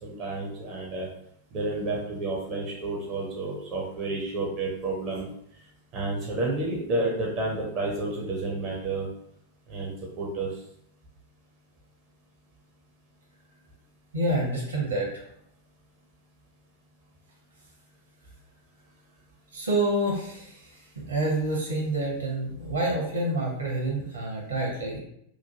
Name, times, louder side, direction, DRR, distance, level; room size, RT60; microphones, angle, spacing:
voice 1, 0.0-1.1 1.5-5.3 5.9-9.1 9.7-10.5, right 2 dB, 35° right, -2 dB, 0.6 m, -30 dB
voice 2, 14.1-15.2 19.5-25.0, right 1 dB, 75° right, -2 dB, 0.9 m, -28 dB
3.0 x 2.2 x 2.7 m, 0.73 s
figure-of-eight pair, 90°, 0 cm